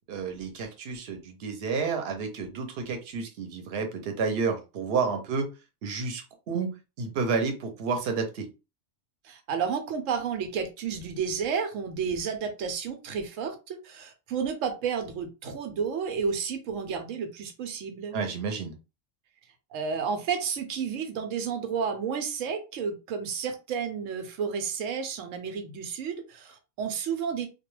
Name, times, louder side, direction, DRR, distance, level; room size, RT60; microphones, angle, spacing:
voice 1, 0.1-5.5 5.8-6.7 7.0-8.5 18.1-18.7, right 5 dB, 60° right, 4 dB, 0.9 m, -30 dB
voice 2, 9.2-18.2 19.7-27.5, right 6 dB, 90° right, 7 dB, 1.0 m, -31 dB
2.3 x 2.2 x 3.1 m, 0.28 s
omnidirectional pair, 1.3 m